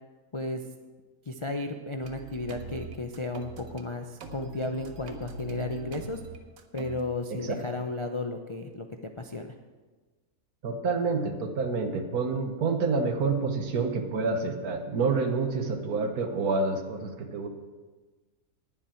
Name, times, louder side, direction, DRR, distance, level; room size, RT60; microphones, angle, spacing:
voice 1, 0.3-0.6 1.3-6.2 6.7-9.5, left 2 dB, 55° left, 4 dB, 0.3 m, -34 dB
sound 1, 2.0-3.8 4.2-7.0, right 4 dB, 70° right, 1.3 m, -42 dB
voice 2, 10.6-17.5, right 4 dB, 90° right, 6 dB, 1.7 m, -28 dB
19.5 x 7.4 x 4.4 m, 1.3 s
omnidirectional pair, 1.5 m